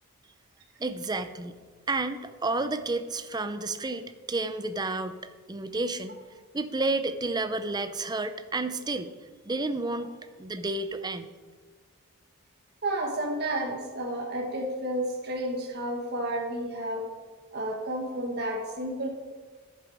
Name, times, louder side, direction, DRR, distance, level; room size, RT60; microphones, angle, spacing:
voice 1, 0.8-1.6 1.9-5.2 5.5-6.2 6.5-9.1 9.5-10.1 10.4-11.3, right 2 dB, 20° right, 10 dB, 0.5 m, -31 dB
voice 2, 12.8-17.0 17.5-19.1, right 1 dB, 50° right, 0 dB, 1.4 m, -31 dB
11.0 x 7.6 x 4.8 m, 1.4 s
head